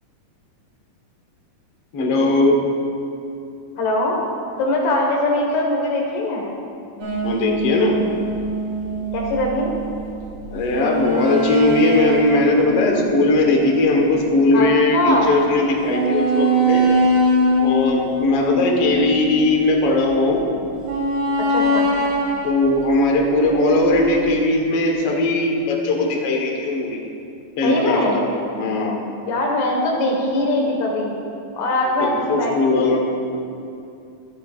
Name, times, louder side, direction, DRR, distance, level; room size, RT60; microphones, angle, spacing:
voice 1, 1.9-2.6 7.2-8.0 10.5-16.8 17.6-20.5 22.4-27.0 27.6-28.2 28.6-29.0 32.0-33.0, left 2 dB, 55° left, -1 dB, 2.0 m, -19 dB
voice 2, 3.8-4.2 4.6-6.5 9.1-9.7 14.5-15.4 21.5-21.9 27.6-28.2 29.3-31.1 31.5-32.9, left 1 dB, 85° left, -1 dB, 3.1 m, -21 dB
sound 1, 7.0-14.7 15.2-15.3 15.9-20.3 20.8-24.4, right 1 dB, 65° right, 4.1 m, -23 dB
24.0 x 8.4 x 2.5 m, 2.6 s
omnidirectional pair, 3.7 m